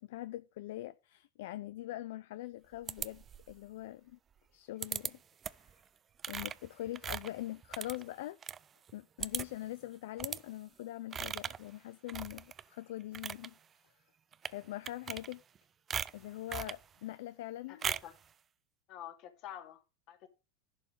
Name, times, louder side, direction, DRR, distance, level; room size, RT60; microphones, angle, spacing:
voice 1, 0.0-4.2 4.5-5.2 6.3-8.4 8.9-13.5 14.5-15.4 16.1-17.9, left 15 dB, 70° left, 0.5 m, -43 dB
sound 1, 2.9-3.6 4.8-5.1 5.4-5.7 6.2-8.6 8.9-9.0 9.2-9.7 10.2-10.4 11.1-11.6 12.1-12.6 13.0-13.5 14.3-14.6 14.8-15.6 15.9-16.8 17.8-18.2, right 8 dB, 30° right, 0.5 m, -39 dB
voice 2, 17.7-18.1 18.9-19.8 20.1-20.3, left 11 dB, 50° left, 2.5 m, -48 dB
11.0 x 5.5 x 5.3 m
hypercardioid pair, 90°, 0 cm